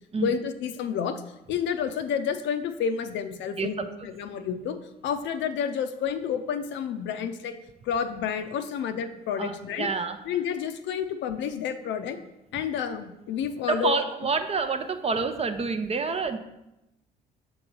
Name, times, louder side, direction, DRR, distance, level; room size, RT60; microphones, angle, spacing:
voice 1, 0.2-1.2 1.5-4.8 5.0-7.5 7.8-9.9 10.3-12.2 12.5-14.0, left 7 dB, 60° left, 8 dB, 0.6 m, -30 dB
voice 2, 9.4-10.2 13.7-16.4, right 4 dB, 30° right, 7 dB, 0.6 m, -28 dB
7.0 x 3.0 x 5.3 m, 0.90 s
hypercardioid pair, 55°, 21 cm